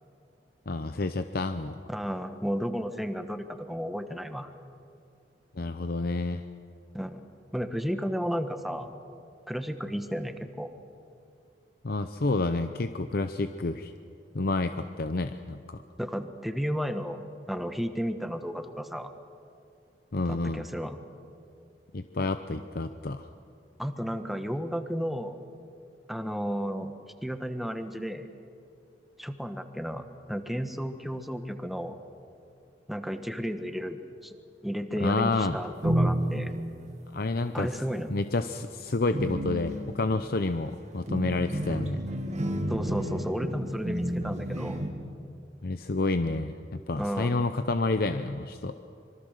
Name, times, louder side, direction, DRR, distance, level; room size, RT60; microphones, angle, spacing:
voice 1, 0.7-1.8 5.6-6.4 11.8-13.9 14.3-15.8 20.1-20.6 21.9-23.3 35.0-35.6 37.1-37.7 38.1-42.0 45.6-48.7, left 3 dB, 60° left, 9 dB, 0.7 m, -29 dB
voice 2, 1.9-4.5 6.9-7.2 7.5-8.9 9.5-10.7 16.0-17.2 17.5-19.1 20.3-21.0 23.8-25.4 26.1-26.9 27.2-28.3 29.2-32.0 32.9-34.4 34.6-36.5 37.5-38.1 42.7-44.8 47.0-47.5, equal, ahead, 7 dB, 1.2 m, -33 dB
sound 1, 35.5-36.7 37.7-38.0 38.4-44.9, right 1 dB, 40° right, 2.3 m, -31 dB
25.5 x 23.5 x 6.6 m, 2.5 s
head